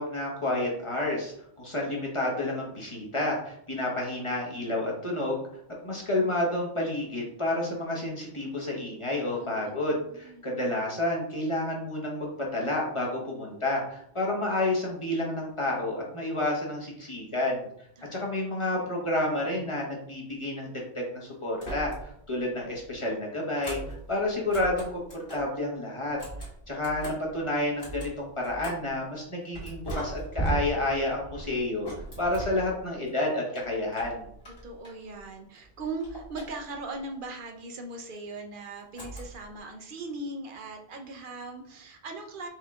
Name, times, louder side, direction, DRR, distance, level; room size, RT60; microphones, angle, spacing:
voice 1, 0.0-5.4 5.8-17.7 18.1-26.2 26.7-31.9 32.2-34.3, left 1 dB, 30° left, -2 dB, 0.9 m, -30 dB
voice 2, 9.3-10.5 18.0-18.7 34.6-42.5, right 2 dB, 55° right, 4 dB, 0.7 m, -40 dB
sound 1, 21.5-22.3 22.6-25.6 26.0-29.0 29.5-33.1 33.5-35.3 35.5-37.0 38.9-39.6, right 1 dB, 55° left, 1.9 m, -39 dB
4.5 x 3.2 x 3.5 m, 0.71 s
omnidirectional pair, 1.2 m